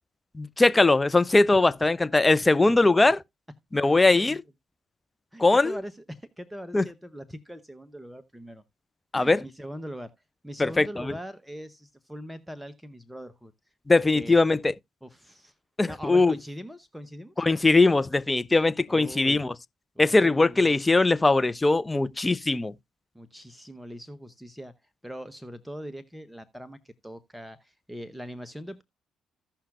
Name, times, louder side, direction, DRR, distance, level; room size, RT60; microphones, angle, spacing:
voice 1, 0.3-3.2 3.7-4.4 5.4-5.8 6.7-6.8 9.1-9.4 10.6-11.1 13.9-14.7 15.8-16.3 17.4-19.5 20.0-22.7, left 2 dB, 20° left, 0.5 m, -21 dB
voice 2, 3.8-4.4 5.3-8.6 9.1-10.1 10.4-13.5 13.9-14.4 15.0-15.5 15.8-17.4 18.9-19.4 19.9-20.7 23.1-24.7 25.0-28.8, equal, 5° right, 0.8 m, -41 dB
15.5 x 5.7 x 2.4 m
hypercardioid pair, 50°, 0 cm